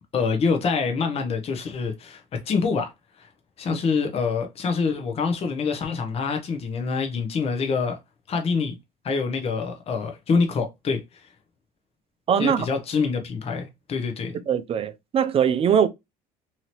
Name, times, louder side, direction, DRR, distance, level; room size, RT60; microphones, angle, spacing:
voice 1, 0.1-2.9 3.2-3.3 3.6-8.0 8.3-8.8 9.0-11.2 12.4-14.4, left 5 dB, 40° left, 0.8 m, -26 dB
voice 2, 12.3-12.7 14.5-15.9, right 8 dB, 35° right, 0.5 m, -21 dB
2.8 x 2.7 x 2.9 m
supercardioid pair, 95°, 16 cm